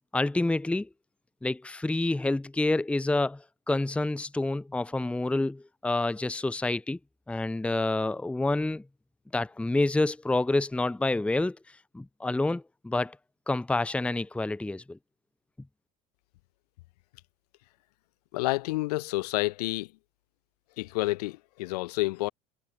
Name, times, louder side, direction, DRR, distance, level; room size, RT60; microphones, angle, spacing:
voice 1, 0.1-0.9 1.4-7.0 7.3-8.8 9.3-11.6 11.9-13.2 13.5-15.0, left 2 dB, 5° left, 0.7 m, -28 dB
voice 2, 18.3-19.9 20.8-22.3, left 20 dB, 85° left, 2.8 m, -29 dB
supercardioid pair, 95°, 20 cm